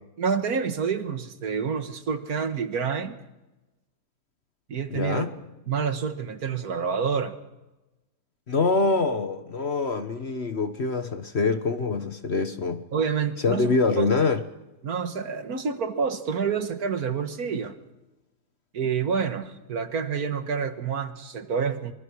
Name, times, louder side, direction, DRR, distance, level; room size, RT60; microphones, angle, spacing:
voice 1, 0.2-3.2 4.7-5.3 5.7-7.4 12.9-14.1 14.8-17.7 18.7-21.9, right 6 dB, 60° right, 1.9 m, -28 dB
voice 2, 4.9-5.4 8.5-12.8 13.4-14.5, left 3 dB, 45° left, 1.3 m, -25 dB
25.0 x 23.0 x 6.4 m
omnidirectional pair, 1.8 m